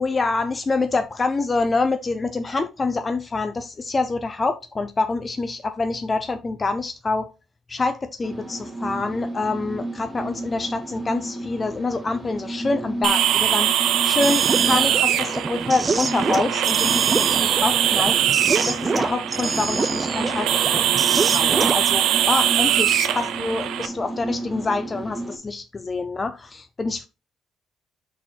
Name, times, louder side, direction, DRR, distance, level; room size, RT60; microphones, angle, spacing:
voice 1, 0.0-7.3 7.7-13.7 14.0-17.3 17.6-18.4 18.7-27.1, left 3 dB, 30° left, 0.6 m, -26 dB
sound 1, 8.2-25.4, right 2 dB, 10° right, 1.6 m, -33 dB
sound 2, 13.0-23.9, right 11 dB, 90° right, 0.7 m, -22 dB
sound 3, 14.2-21.8, right 4 dB, 30° right, 0.5 m, -26 dB
5.8 x 4.2 x 4.5 m
cardioid pair, 90°, 0 cm